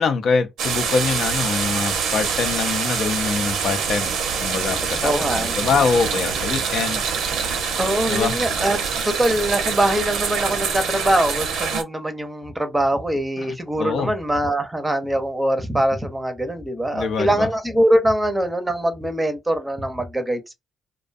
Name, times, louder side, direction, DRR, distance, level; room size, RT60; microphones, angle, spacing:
voice 1, 0.0-4.1 4.4-7.4 8.1-8.4 13.4-14.1 16.9-17.5, left 5 dB, 65° left, 0.5 m, -24 dB
sound 1, 0.6-11.8, right 6 dB, 85° right, 0.7 m, -25 dB
voice 2, 5.0-5.5 7.8-8.8 9.0-20.5, right 1 dB, 10° right, 0.6 m, -22 dB
2.5 x 2.2 x 2.5 m
cardioid pair, 90°, 0 cm